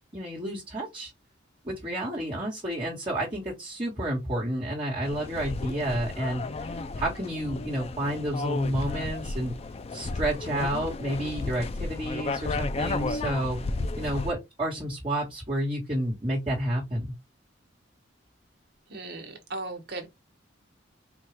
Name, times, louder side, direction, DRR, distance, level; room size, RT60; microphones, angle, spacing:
voice 1, 0.1-1.1 1.6-6.7 7.0-9.5 9.9-13.6 14.0-17.1, right 1 dB, 30° right, 1.4 m, -30 dB
sound 1, 5.0-14.3, left 3 dB, 30° left, 0.3 m, -33 dB
voice 2, 18.9-20.1, right 2 dB, 55° right, 1.1 m, -37 dB
4.3 x 2.3 x 3.0 m
head